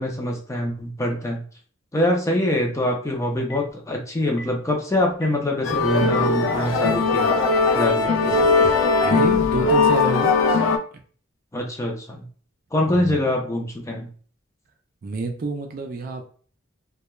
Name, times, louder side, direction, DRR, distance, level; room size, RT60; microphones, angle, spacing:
voice 1, 0.0-1.4 1.9-7.4 7.7-8.5 11.5-12.3 12.7-14.1, left 1 dB, 15° left, 1 dB, 0.5 m, -24 dB
Telephone, 3.3-3.7 4.3-4.5 5.1-5.3 6.0-6.9 7.4-7.6, left 1 dB, 55° left, 0.7 m, -38 dB
sound 1, 5.7-10.8, left 4 dB, 85° left, 0.4 m, -19 dB
voice 2, 9.0-10.3 12.9-13.2 15.0-16.3, right 3 dB, 45° right, 4 dB, 0.4 m, -28 dB
2.2 x 2.1 x 3.0 m, 0.43 s
head